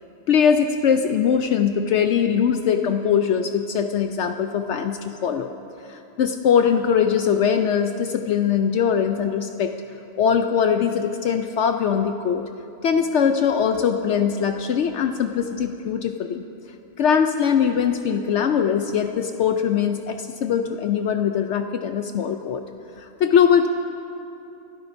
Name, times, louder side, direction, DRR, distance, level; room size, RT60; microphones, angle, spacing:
voice 1, 0.3-5.5 5.9-9.7 10.2-12.4 12.8-16.4 17.0-22.6 23.0-23.7, left 7 dB, 65° left, 6 dB, 0.8 m, -21 dB
25.0 x 12.0 x 2.6 m, 2.8 s
omnidirectional pair, 1.4 m